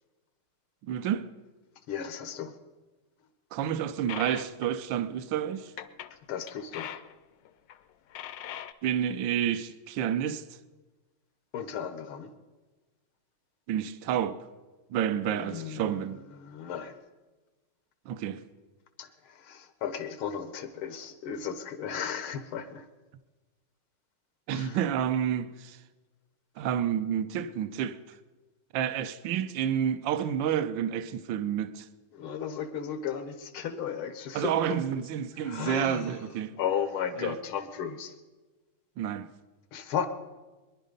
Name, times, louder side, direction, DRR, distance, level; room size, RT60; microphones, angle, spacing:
voice 1, 0.8-1.2 3.5-5.7 8.8-10.4 13.7-14.4 14.9-16.2 18.1-18.4 24.5-25.8 26.6-28.0 28.7-31.9 34.3-36.6 37.2-37.4 39.0-39.3, right 9 dB, 70° right, 1.4 m, -29 dB
voice 2, 1.9-2.6 6.1-6.9 11.5-12.3 15.3-17.0 19.0-22.9 24.5-24.8 32.1-35.0 35.4-36.2 36.6-38.1 39.7-40.1, left 8 dB, 85° left, 1.9 m, -35 dB
sound 1, 4.1-4.7 5.8-6.1 6.5-7.1 7.5-7.8 8.1-8.7, left 11 dB, 70° left, 1.2 m, -41 dB
23.0 x 11.0 x 5.2 m
omnidirectional pair, 2.3 m